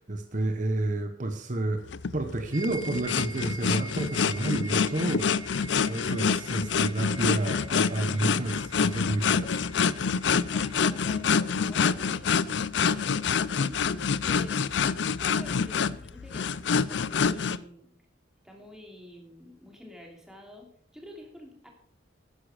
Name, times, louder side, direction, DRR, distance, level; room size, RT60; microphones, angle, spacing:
voice 1, 0.0-5.3 5.8-9.6, right 2 dB, 40° right, 6 dB, 1.0 m, -30 dB
sound 1, 1.9-17.6, left 6 dB, 70° left, 0.5 m, -27 dB
sound 2, 2.5-11.2, right 3 dB, 20° right, 0.5 m, -45 dB
voice 2, 8.3-8.6 10.2-12.3 12.8-17.9 18.4-21.7, left 1 dB, 5° right, 0 dB, 2.8 m, -48 dB
13.0 x 9.8 x 4.9 m, 0.64 s
head